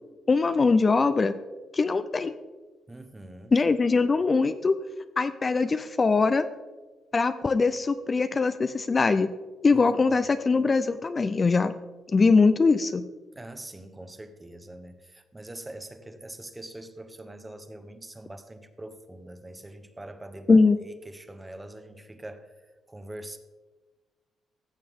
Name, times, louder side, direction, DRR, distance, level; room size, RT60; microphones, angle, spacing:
voice 1, 0.3-1.3 1.7-2.3 3.5-4.8 5.2-6.5 7.1-9.3 9.6-11.7 12.1-13.0 20.5-20.8, left 4 dB, 30° left, 11 dB, 0.4 m, -22 dB
voice 2, 2.9-3.5 9.7-9.8 13.3-22.5 22.9-23.4, right 1 dB, 15° right, 9 dB, 0.9 m, -43 dB
15.0 x 6.7 x 3.6 m, 1.3 s
cardioid pair, 90°, 0 cm